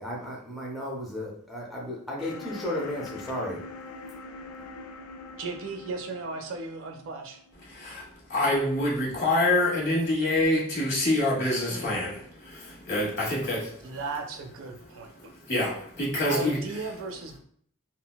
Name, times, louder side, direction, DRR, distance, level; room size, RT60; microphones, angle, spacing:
voice 1, 0.0-3.6, left 1 dB, ahead, -4 dB, 0.5 m, -34 dB
sound 1, 2.2-8.1, left 3 dB, 70° left, 0.4 m, -44 dB
voice 2, 5.4-7.4 13.8-15.3 16.3-17.4, right 3 dB, 65° right, 5 dB, 0.4 m, -36 dB
voice 3, 7.6-8.0 8.3-13.9 15.5-16.6, left 1 dB, 50° left, -5 dB, 1.2 m, -26 dB
3.7 x 2.1 x 2.2 m, 0.62 s
head